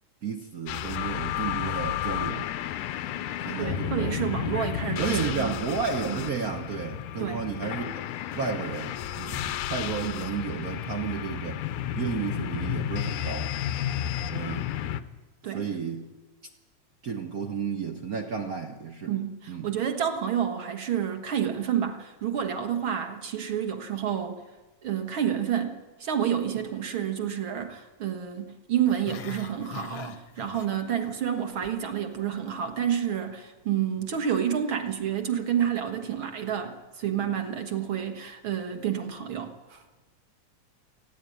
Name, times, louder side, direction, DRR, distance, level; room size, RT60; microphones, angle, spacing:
voice 1, 0.2-2.5 3.4-4.2 5.0-8.0 8.3-11.7 11.9-13.5 14.3-14.7 15.5-16.1 17.0-19.1 19.5-19.7, right 6 dB, 70° right, 4 dB, 0.8 m, -32 dB
sound 1, 0.7-15.0, left 11 dB, 85° left, 2.2 m, -32 dB
voice 2, 3.6-5.6 6.1-6.2 7.2-7.4 15.4-15.7 19.1-24.4 24.8-39.8, right 9 dB, 50° right, 6 dB, 2.0 m, -29 dB
Growling, 28.8-31.1 31.4-31.8 32.1-32.2, left 8 dB, 65° left, 1.4 m, -42 dB
28.5 x 10.0 x 9.4 m, 1.2 s
omnidirectional pair, 3.3 m